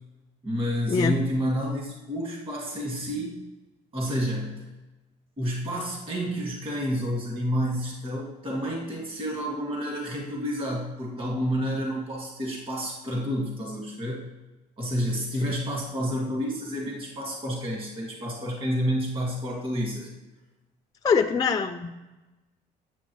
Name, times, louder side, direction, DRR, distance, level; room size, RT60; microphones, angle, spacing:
voice 1, 0.4-3.4 3.9-4.7 5.4-14.3 14.8-20.1, equal, 30° right, -2 dB, 2.2 m, -29 dB
voice 2, 21.0-22.0, left 5 dB, 20° left, 5 dB, 0.4 m, -23 dB
8.9 x 7.8 x 3.1 m, 1.1 s
cardioid pair, 110°, 17 cm